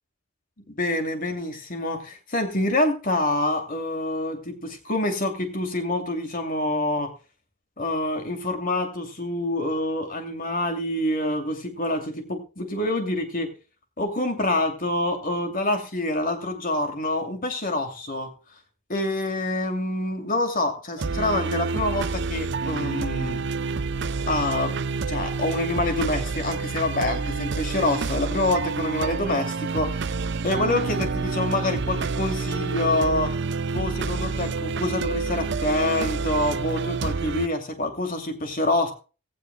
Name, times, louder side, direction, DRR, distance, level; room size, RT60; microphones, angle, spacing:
voice 1, 0.7-7.1 7.8-13.5 14.0-18.3 18.9-23.4 24.3-24.7 25.1-30.1 30.4-33.3 33.7-38.9, left 1 dB, 40° left, 5 dB, 2.6 m, -26 dB
sound 1, 21.0-37.5, right 4 dB, 50° right, 0.6 m, -28 dB
17.5 x 16.0 x 2.2 m, 0.34 s
head